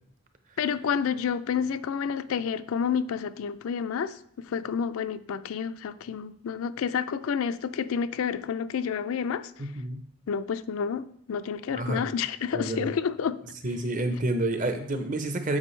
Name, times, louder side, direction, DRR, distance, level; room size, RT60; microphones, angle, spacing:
voice 1, 0.6-9.5 10.3-13.4, left 7 dB, 70° left, 0.4 m, -29 dB
voice 2, 9.6-10.0 11.8-12.0 12.5-12.9 13.6-15.6, right 1 dB, 35° right, 0.7 m, -29 dB
8.4 x 5.2 x 3.2 m
head